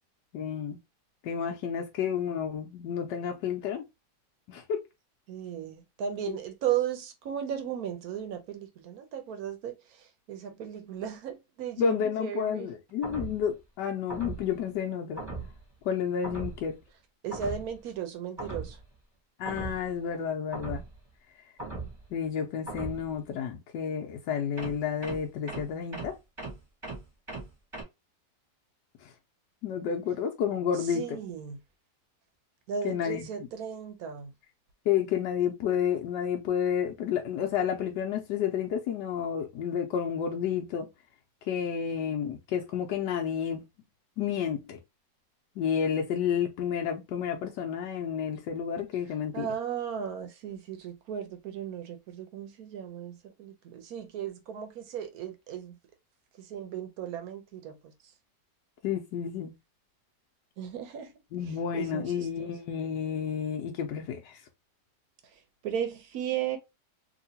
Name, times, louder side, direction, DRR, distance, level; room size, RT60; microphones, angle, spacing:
voice 1, 0.3-0.8 1.2-3.8 4.5-4.8 6.3-6.4 11.8-15.2 15.8-16.8 19.4-20.8 22.1-26.2 29.0-29.1 29.6-31.2 32.8-33.3 34.9-40.9 41.5-43.6 44.2-44.8 45.6-49.5 58.8-59.5 61.3-64.4, left 8 dB, 85° left, 1.3 m, -30 dB
voice 2, 5.3-12.7 17.2-18.8 30.7-31.6 32.7-34.3 49.3-55.8 56.4-58.1 60.6-61.1 61.5-62.5 65.3-66.6, right 9 dB, 70° right, 1.1 m, -36 dB
sound 1, 13.0-13.5 14.1-14.5 15.2-15.6 16.2-16.7 17.3-17.8 18.4-18.8 19.4-19.9 20.5-21.0 21.6-22.1 22.7-23.1 24.6-27.8, right 3 dB, 20° right, 1.1 m, -38 dB
3.0 x 2.8 x 2.7 m
omnidirectional pair, 1.8 m